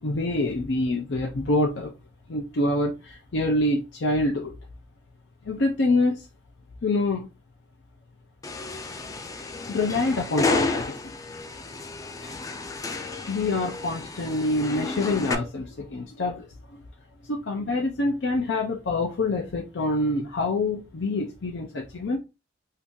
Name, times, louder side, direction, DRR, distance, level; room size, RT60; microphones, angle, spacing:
voice 1, 0.0-1.9 2.3-4.5 5.5-6.2 6.8-7.3 9.7-11.1 12.2-12.3 13.3-16.5 17.3-22.2, left 2 dB, 85° left, 0.6 m, -26 dB
sound 1, 8.4-15.3, left 3 dB, 20° left, 0.3 m, -31 dB
2.8 x 2.6 x 3.7 m
head